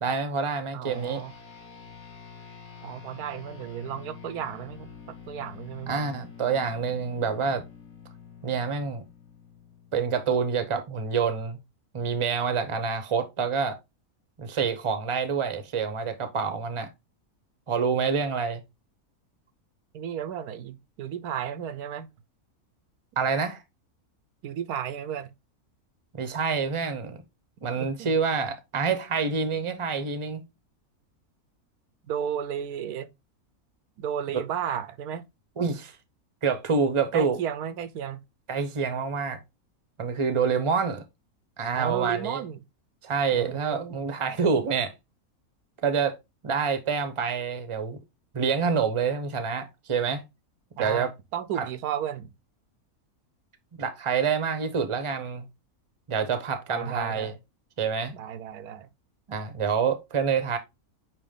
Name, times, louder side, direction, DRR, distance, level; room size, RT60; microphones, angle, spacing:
voice 1, 0.0-1.2 5.9-7.6 8.4-9.0 9.9-11.6 11.9-13.8 14.4-16.9 17.7-18.6 23.2-23.6 26.1-27.2 27.6-30.4 34.3-34.4 35.6-35.9 36.4-37.4 38.5-39.4 40.0-41.0 41.6-42.4 43.0-44.9 45.8-46.2 46.4-48.0 48.3-50.2 50.7-51.1 51.6-51.7 53.8-55.4 56.1-57.3 57.8-58.1 59.3-60.6, right 5 dB, 25° right, 0.8 m, -27 dB
voice 2, 0.7-1.3 2.8-6.0 19.9-22.1 24.4-25.3 27.8-28.1 32.0-33.1 34.0-35.3 37.1-38.2 41.7-42.6 43.3-44.0 50.8-52.3 56.7-57.4 58.1-58.9, right 9 dB, 90° right, 1.2 m, -33 dB
sound 1, 0.9-10.6, left 7 dB, 40° left, 2.5 m, -47 dB
8.8 x 3.0 x 3.6 m
omnidirectional pair, 1.6 m